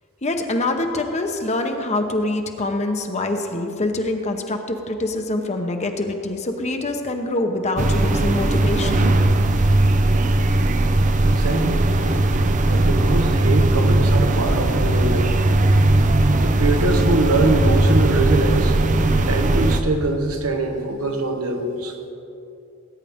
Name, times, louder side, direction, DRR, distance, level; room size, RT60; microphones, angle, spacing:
voice 1, 0.2-9.1, left 2 dB, 30° left, 5 dB, 0.9 m, -25 dB
sound 1, 7.8-19.8, right 2 dB, 35° right, 0.6 m, -18 dB
voice 2, 11.3-11.9 12.7-15.4 16.1-18.7 19.3-22.0, right 2 dB, 85° right, 4 dB, 1.3 m, -23 dB
19.0 x 9.8 x 3.6 m, 2.7 s
head